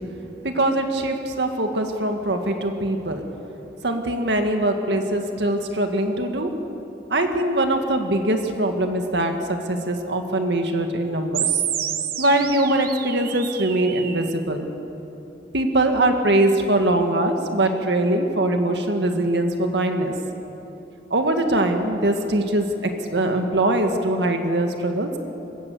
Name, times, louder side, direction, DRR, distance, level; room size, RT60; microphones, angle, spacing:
voice 1, 0.4-3.2 3.8-6.5 7.1-11.6 12.2-14.7 15.5-20.1 21.1-25.2, right 1 dB, 80° right, 4 dB, 1.9 m, -22 dB
sound 1, 11.3-14.3, right 10 dB, 60° right, 1.2 m, -28 dB
27.0 x 15.0 x 8.0 m, 3.0 s
head